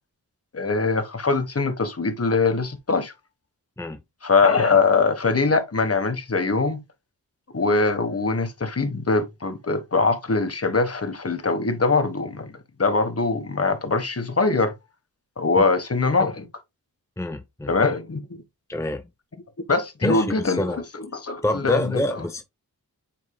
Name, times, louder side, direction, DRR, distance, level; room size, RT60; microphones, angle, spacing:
voice 1, 0.5-3.1 4.2-6.8 7.5-14.7 15.4-16.5 17.7-18.4 19.7-22.2, left 3 dB, 40° left, 1.4 m, -22 dB
voice 2, 17.2-17.7 18.7-19.0 20.0-20.8 21.4-22.4, left 1 dB, 10° left, 0.8 m, -26 dB
9.0 x 4.5 x 2.3 m
cardioid pair, 55°, 37 cm